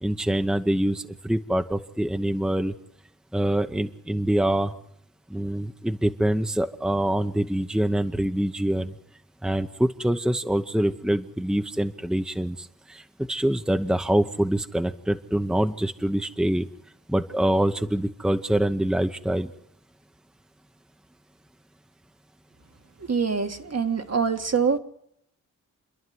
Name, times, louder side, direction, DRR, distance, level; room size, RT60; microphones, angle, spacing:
voice 1, 0.0-2.7 3.3-4.7 5.3-9.0 9.4-16.7 17.1-19.5, right 1 dB, ahead, 8 dB, 0.9 m, -25 dB
voice 2, 23.1-24.8, right 5 dB, 50° right, 6 dB, 1.6 m, -24 dB
28.5 x 11.0 x 9.5 m, 0.74 s
cardioid pair, 65°, 33 cm